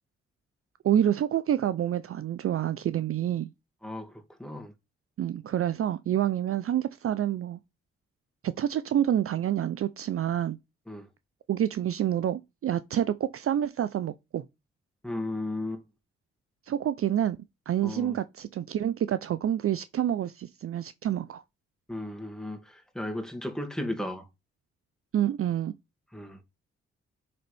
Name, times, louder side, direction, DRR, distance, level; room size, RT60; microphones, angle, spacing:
voice 1, 0.8-3.5 5.2-7.6 8.4-10.6 11.5-14.4 16.7-17.4 17.7-21.4 25.1-25.7, right 10 dB, 50° right, 0.5 m, -28 dB
voice 2, 3.8-4.1 4.4-4.7 10.9-11.1 15.0-15.8 17.8-18.2 21.9-24.3 26.1-26.4, left 1 dB, ahead, 2.1 m, -35 dB
9.4 x 4.0 x 3.4 m
supercardioid pair, 45°, 30 cm